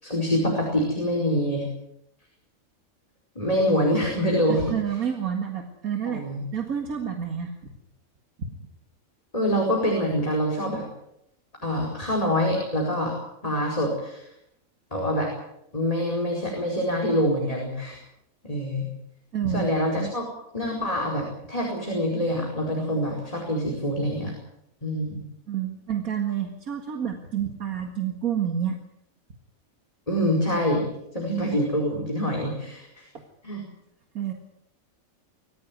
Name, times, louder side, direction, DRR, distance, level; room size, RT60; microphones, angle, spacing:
voice 1, 0.0-1.7 3.3-4.8 6.0-6.4 9.3-10.9 11.6-13.1 13.4-14.2 14.9-15.3 15.7-18.0 18.4-18.9 19.5-20.2 20.5-24.3 24.8-25.2 30.1-30.9 31.1-33.0 33.4-33.6, equal, 25° left, -1 dB, 5.1 m, -25 dB
voice 2, 4.5-6.2 6.5-7.7 19.3-19.7 25.5-28.8 34.1-34.3, right 8 dB, 85° right, 4 dB, 2.3 m, -29 dB
23.0 x 15.5 x 9.4 m, 0.80 s
omnidirectional pair, 1.5 m